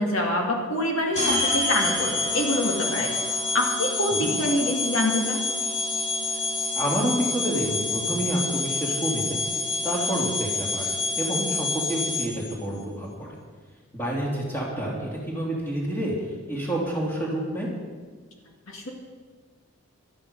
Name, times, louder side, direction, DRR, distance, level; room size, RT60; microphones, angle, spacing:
voice 1, 0.0-3.1 3.5-5.4 18.7-18.9, left 1 dB, 70° left, 0 dB, 2.1 m, -25 dB
sound 1, 1.1-12.5, left 3 dB, 30° left, 2.4 m, -27 dB
voice 2, 6.8-9.4 9.8-13.4 13.9-16.1 16.5-17.7, right 1 dB, 10° left, -4 dB, 2.8 m, -28 dB
13.0 x 12.5 x 5.4 m, 1.5 s
head